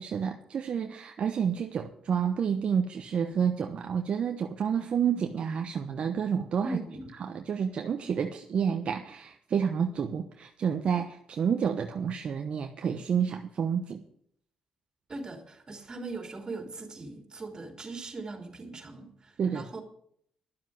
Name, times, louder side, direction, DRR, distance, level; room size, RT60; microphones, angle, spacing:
voice 1, 0.0-6.8 7.2-14.0 19.4-19.7, right 7 dB, 60° right, 5 dB, 1.0 m, -29 dB
voice 2, 6.6-7.1 15.1-19.8, right 3 dB, 35° right, 4 dB, 3.4 m, -40 dB
11.5 x 7.4 x 9.4 m, 0.68 s
supercardioid pair, 70°, 2 cm